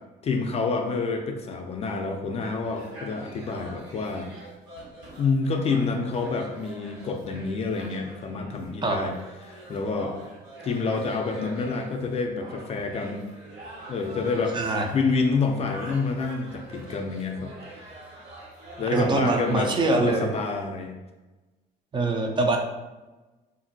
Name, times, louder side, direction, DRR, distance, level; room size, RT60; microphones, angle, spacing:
voice 1, 0.2-4.3 5.2-9.1 9.4-10.1 10.6-13.3 13.9-17.5 18.8-20.9, left 4 dB, 40° left, 4 dB, 0.4 m, -28 dB
sound 1, 2.4-19.6, right 1 dB, 65° right, 1.4 m, -44 dB
voice 2, 14.5-14.9 18.9-20.3 21.9-22.6, right 2 dB, 30° right, 2 dB, 0.4 m, -23 dB
2.8 x 2.5 x 2.6 m, 1.1 s
cardioid pair, 110°, 17 cm